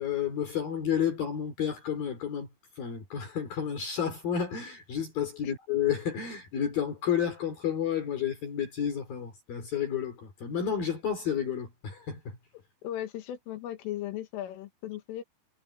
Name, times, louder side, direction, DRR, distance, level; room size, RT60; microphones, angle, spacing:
voice 1, 0.0-2.5 2.8-12.4, left 8 dB, 45° left, 4.8 m, -31 dB
voice 2, 12.8-15.2, left 12 dB, 75° left, 4.4 m, -37 dB
omnidirectional pair, 6.0 m